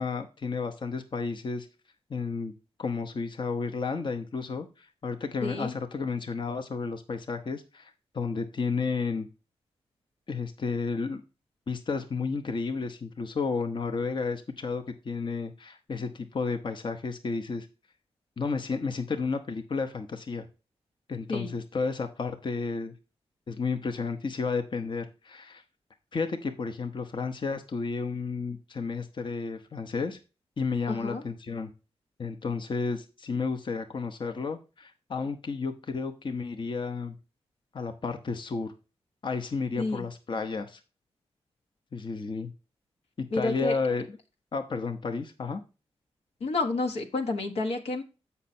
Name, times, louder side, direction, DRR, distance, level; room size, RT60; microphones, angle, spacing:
voice 1, 0.0-1.7 2.1-2.5 2.8-9.3 10.3-11.2 11.7-17.7 18.4-20.5 21.1-22.9 23.5-25.6 26.1-30.2 30.6-31.7 32.2-37.2 37.7-38.7 39.2-40.8 41.9-42.5 43.2-44.2 44.5-45.6, left 4 dB, 50° left, 6 dB, 0.8 m, -32 dB
voice 2, 5.4-5.7 21.3-21.5 30.9-31.2 39.8-40.1 43.3-43.8 46.4-48.0, left 3 dB, 85° left, 3 dB, 1.2 m, -30 dB
7.2 x 5.6 x 4.2 m, 0.31 s
cardioid pair, 60°, 11 cm